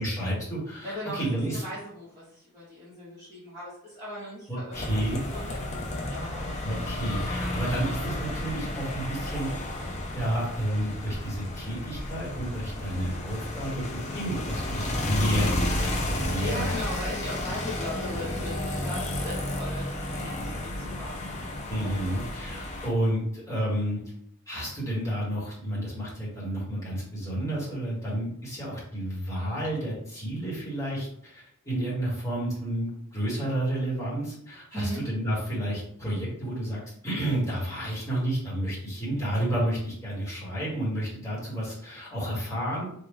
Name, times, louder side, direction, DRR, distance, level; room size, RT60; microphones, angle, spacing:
voice 1, 0.0-1.6 4.5-5.2 6.6-9.5 10.1-13.9 14.1-16.7 21.7-24.0 24.5-42.8, right 1 dB, 15° left, -7 dB, 1.5 m, -30 dB
voice 2, 0.8-5.1 5.3-6.6 16.1-21.2 34.7-35.0, equal, 20° right, -12 dB, 1.4 m, -38 dB
sound 1, 4.7-22.9, left 1 dB, 30° left, 0.6 m, -32 dB
3.8 x 2.5 x 3.1 m, 0.66 s
head